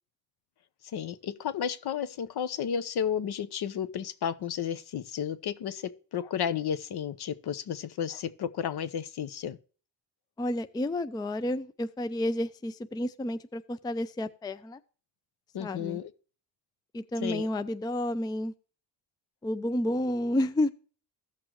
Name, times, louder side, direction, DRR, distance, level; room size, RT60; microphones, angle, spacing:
voice 1, 0.9-9.6 15.5-16.1 17.2-17.5, left 8 dB, 60° left, 0.9 m, -32 dB
voice 2, 10.4-14.8 15.6-16.0 16.9-18.5 19.4-20.7, left 1 dB, 10° left, 0.4 m, -30 dB
15.5 x 5.9 x 3.0 m
cardioid pair, 85°, 44 cm